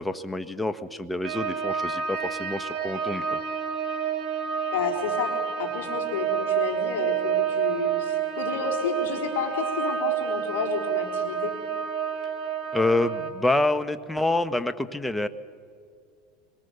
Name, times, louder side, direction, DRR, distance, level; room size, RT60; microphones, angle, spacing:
voice 1, 0.0-3.4 12.7-15.3, left 2 dB, 5° left, 11 dB, 1.2 m, -27 dB
sound 1, 1.2-13.3, right 8 dB, 45° right, 3.1 m, -29 dB
voice 2, 4.7-11.6, left 6 dB, 85° left, 2 dB, 3.9 m, -31 dB
25.5 x 22.5 x 6.9 m, 2.2 s
supercardioid pair, 110°, 0 cm